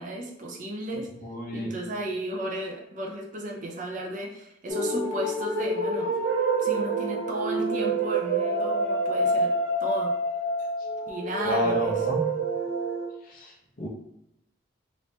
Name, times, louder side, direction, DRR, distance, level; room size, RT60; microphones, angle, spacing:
voice 1, 0.0-1.1 1.5-6.2 6.6-9.5 9.8-10.2 11.0-11.9, right 1 dB, 40° right, 0 dB, 0.5 m, -34 dB
voice 2, 1.2-1.7 11.4-12.3 13.2-13.9, left 1 dB, 45° left, -3 dB, 0.8 m, -30 dB
sound 1, 4.7-13.1, right 2 dB, 70° right, 0.8 m, -27 dB
3.0 x 2.7 x 3.2 m, 0.79 s
head